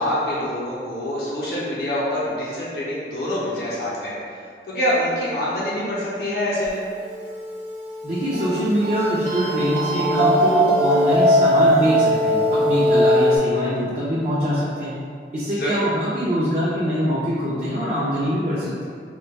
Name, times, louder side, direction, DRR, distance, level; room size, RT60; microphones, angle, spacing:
voice 1, 0.0-4.1 4.7-6.8 15.6-15.8, left 1 dB, 60° left, -8 dB, 0.6 m, -25 dB
sound 1, 7.1-13.4, equal, 90° right, 0.5 m, -20 dB
voice 2, 8.0-14.9 15.3-18.9, equal, 40° right, -8 dB, 0.4 m, -23 dB
2.2 x 2.2 x 3.9 m, 2.2 s
head